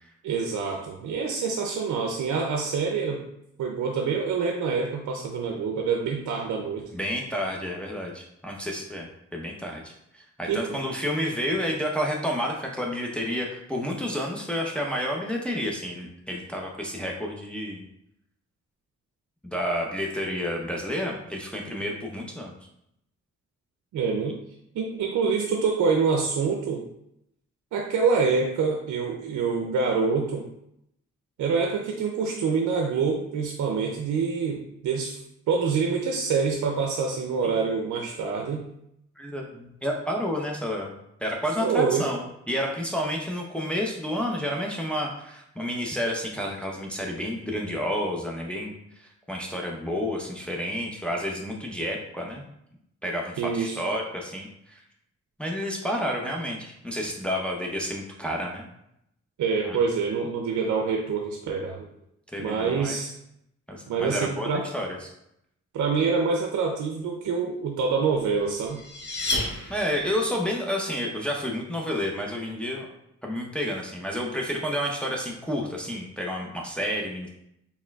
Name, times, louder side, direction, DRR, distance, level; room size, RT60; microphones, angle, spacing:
voice 1, 0.2-3.2 3.6-6.9 10.5-10.7 23.9-24.4 24.7-26.8 27.7-30.5 31.4-35.2 35.5-38.7 41.6-42.1 53.4-53.8 59.4-61.9 62.4-63.1 63.9-64.7 65.7-68.8, right 5 dB, 80° right, 1 dB, 0.5 m, -26 dB
voice 2, 6.9-17.8 19.4-22.5 37.4-37.6 39.2-40.9 41.2-48.7 49.0-52.4 53.0-54.8 55.4-58.6 59.6-59.8 62.3-63.0 63.7-65.1 69.7-72.9 73.2-77.3, equal, 5° left, -1 dB, 0.8 m, -30 dB
sound 1, 68.2-70.3, left 2 dB, 35° left, 1.1 m, -31 dB
4.2 x 3.5 x 2.3 m, 0.77 s
supercardioid pair, 50°, 30 cm